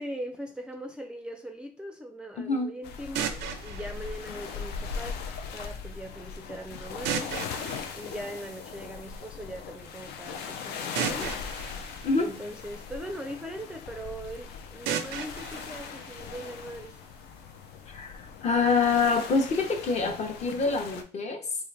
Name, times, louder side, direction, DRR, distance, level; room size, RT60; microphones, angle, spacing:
voice 1, 0.0-7.4 7.9-17.0, equal, 5° right, 0.4 m, -40 dB
voice 2, 2.4-2.7 12.0-12.3 17.9-21.5, left 4 dB, 40° left, 0.8 m, -26 dB
sound 1, 2.8-21.0, left 6 dB, 75° left, 0.5 m, -39 dB
sound 2, 3.2-5.2 7.1-9.0 11.0-13.2 14.9-16.9, right 9 dB, 90° right, 0.5 m, -36 dB
3.7 x 2.5 x 3.3 m
cardioid pair, 110°, 17 cm